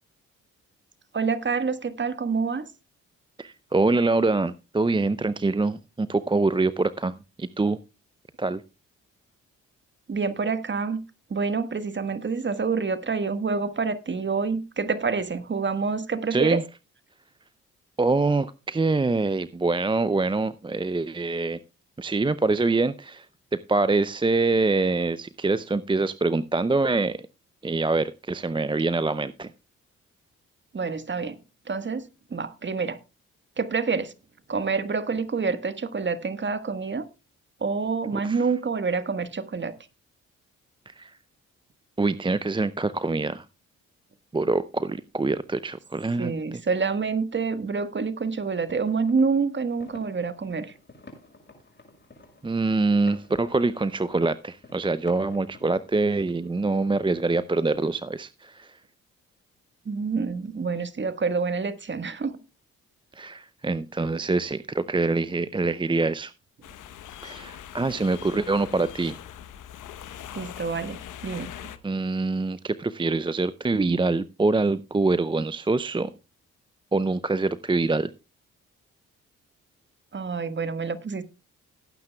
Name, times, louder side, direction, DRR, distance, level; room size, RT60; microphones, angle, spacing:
voice 1, 1.1-2.7 10.1-11.0 11.3-16.6 30.7-31.4 31.7-33.0 33.6-34.1 34.5-37.1 37.6-39.7 46.2-50.7 59.8-62.4 70.3-71.7 80.1-81.2, right 5 dB, 35° right, 1.4 m, -27 dB
voice 2, 3.4-7.8 8.4-8.6 16.3-16.6 18.0-21.6 22.0-23.3 23.5-27.3 27.6-29.5 38.2-38.5 40.9-41.2 42.0-43.5 44.3-46.6 52.4-58.8 63.1-66.3 67.2-69.1 71.8-76.1 76.9-78.1, right 3 dB, 15° right, 0.6 m, -25 dB
sound 1, 48.3-57.3, left 2 dB, 35° left, 6.1 m, -51 dB
sound 2, 66.6-71.8, left 10 dB, 70° left, 1.1 m, -41 dB
18.5 x 9.4 x 2.3 m
supercardioid pair, 50°, 32 cm